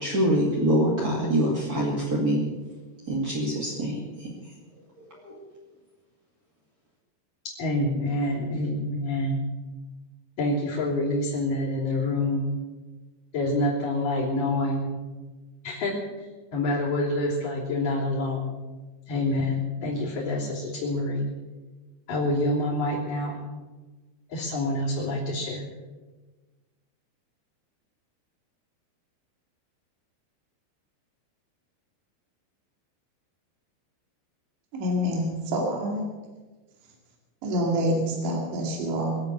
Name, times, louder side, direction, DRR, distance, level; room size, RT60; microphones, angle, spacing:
voice 1, 0.0-2.4 3.1-4.3 5.2-5.4, right 1 dB, 30° right, -5 dB, 1.8 m, -25 dB
voice 2, 7.6-9.4 10.4-12.5 13.3-14.9 15.6-16.0 16.5-18.5 19.1-21.3 22.1-23.4 24.3-25.7, left 1 dB, 50° left, -8 dB, 4.7 m, -27 dB
voice 3, 34.7-36.0 37.4-39.2, equal, 75° right, 0 dB, 4.6 m, -27 dB
24.5 x 8.2 x 6.9 m, 1.3 s
omnidirectional pair, 5.3 m